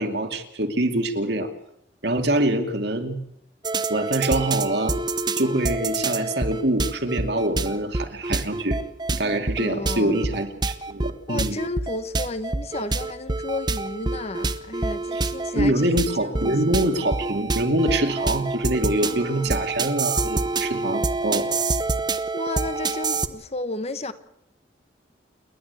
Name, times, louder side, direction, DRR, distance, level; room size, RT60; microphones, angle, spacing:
voice 1, 0.0-1.5 2.0-3.2 3.9-5.0 5.4-8.8 9.1-11.6 15.6-21.5, right 1 dB, 60° right, 2.5 m, -24 dB
sound 1, 3.6-23.3, right 3 dB, 25° right, 0.9 m, -27 dB
voice 2, 9.6-10.2 11.3-16.9 19.0-19.6 22.3-24.1, left 2 dB, 35° left, 1.1 m, -33 dB
29.0 x 11.5 x 8.3 m
head